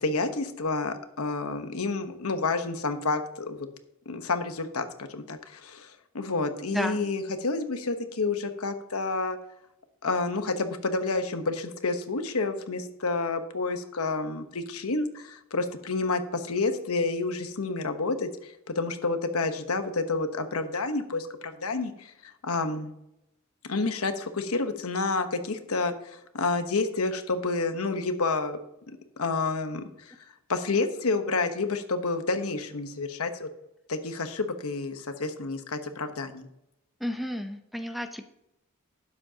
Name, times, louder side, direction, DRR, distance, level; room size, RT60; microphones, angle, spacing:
voice 1, 0.0-3.7 4.1-9.4 10.0-22.9 23.7-28.6 29.2-30.1 30.5-33.5 33.9-36.5, left 3 dB, 85° left, 8 dB, 1.0 m, -29 dB
voice 2, 6.7-7.1 37.0-38.2, left 1 dB, ahead, 6 dB, 0.7 m, -32 dB
12.5 x 9.6 x 2.8 m, 0.84 s
head